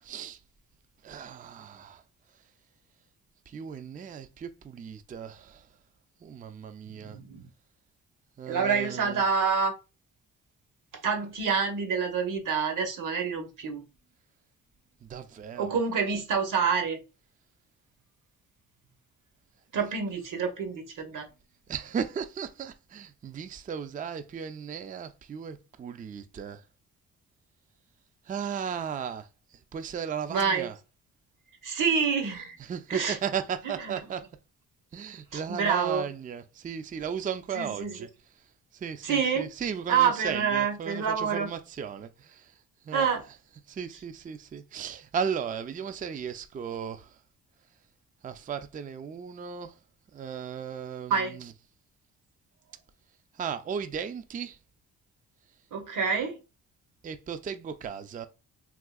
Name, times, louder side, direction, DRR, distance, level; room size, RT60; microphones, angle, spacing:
voice 1, 0.0-0.4 1.0-2.0 3.5-5.7 6.2-7.2 8.4-9.2 15.0-15.8 21.7-26.6 28.3-29.3 29.7-30.8 32.6-34.3 34.9-38.1 38.7-42.5 42.8-43.1 43.7-47.2 48.2-49.7 50.1-51.5 53.3-54.6 57.0-58.3, right 7 dB, 25° right, 0.4 m, -36 dB
voice 2, 7.0-7.5 8.5-9.7 11.0-13.8 15.6-17.0 19.7-21.2 30.3-30.7 31.6-32.6 32.9-33.2 33.8-33.9 35.3-36.1 37.5-37.9 39.0-39.5 39.9-41.5 42.9-43.2 51.1-51.4 55.7-56.4, right 6 dB, 65° right, 1.0 m, -27 dB
3.6 x 2.7 x 2.3 m
cardioid pair, 65°, 35 cm